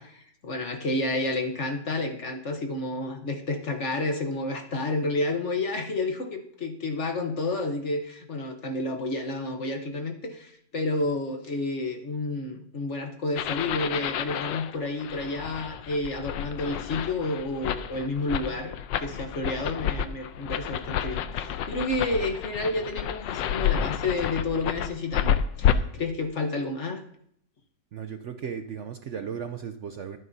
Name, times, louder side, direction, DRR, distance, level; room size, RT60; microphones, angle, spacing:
voice 1, 0.0-27.0, left 2 dB, 45° left, 5 dB, 1.2 m, -30 dB
sound 1, 13.4-25.7, left 9 dB, 85° left, 1.3 m, -30 dB
voice 2, 27.9-30.2, right 7 dB, 70° right, 7 dB, 0.6 m, -36 dB
23.0 x 9.5 x 2.7 m, 0.68 s
omnidirectional pair, 1.9 m